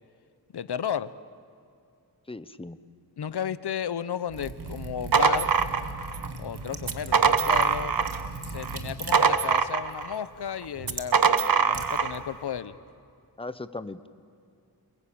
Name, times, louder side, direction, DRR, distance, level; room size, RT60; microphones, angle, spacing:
voice 1, 0.5-1.1 3.2-5.5 6.4-8.0 8.5-12.8, left 8 dB, 80° left, 15 dB, 0.9 m, -33 dB
voice 2, 2.3-2.8 13.4-14.1, left 2 dB, 15° left, 13 dB, 0.9 m, -38 dB
Liquid, 4.3-12.6, right 3 dB, 80° right, 2.3 m, -40 dB
sound 1, 4.8-6.3 6.8-8.3 8.6-10.1 10.8-12.2, right 5 dB, 60° right, 1.2 m, -23 dB
29.0 x 21.5 x 8.7 m, 2.5 s
wide cardioid pair, 75°, 39 cm